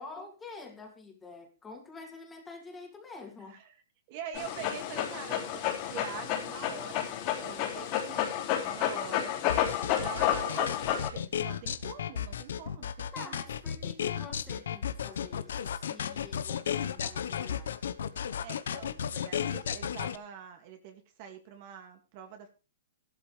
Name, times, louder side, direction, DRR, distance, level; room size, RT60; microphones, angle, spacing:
voice 1, 0.0-3.6 13.1-17.7, left 3 dB, 10° left, 2 dB, 2.6 m, -47 dB
voice 2, 4.1-9.4 10.0-13.4 18.4-22.5, right 8 dB, 40° right, 5 dB, 2.1 m, -45 dB
Dog, 4.3-11.1, left 10 dB, 35° left, 3.5 m, -31 dB
sound 1, 9.5-20.2, left 8 dB, 75° left, 1.0 m, -34 dB
14.5 x 12.5 x 3.3 m, 0.31 s
hypercardioid pair, 155°, 0 cm